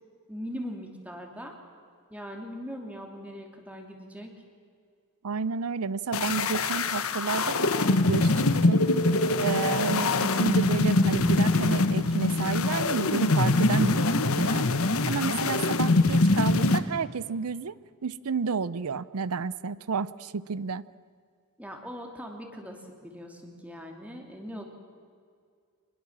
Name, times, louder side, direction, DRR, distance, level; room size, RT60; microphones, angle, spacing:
voice 1, 0.3-1.5 2.1-4.4 21.6-24.6, equal, 5° right, 2 dB, 2.9 m, -40 dB
voice 2, 5.2-8.9 9.4-14.8 15.1-17.7 18.0-20.9, right 5 dB, 75° right, 18 dB, 0.6 m, -31 dB
sound 1, 6.1-16.8, left 2 dB, 70° left, 1.2 m, -24 dB
25.0 x 21.5 x 7.4 m, 2.1 s
head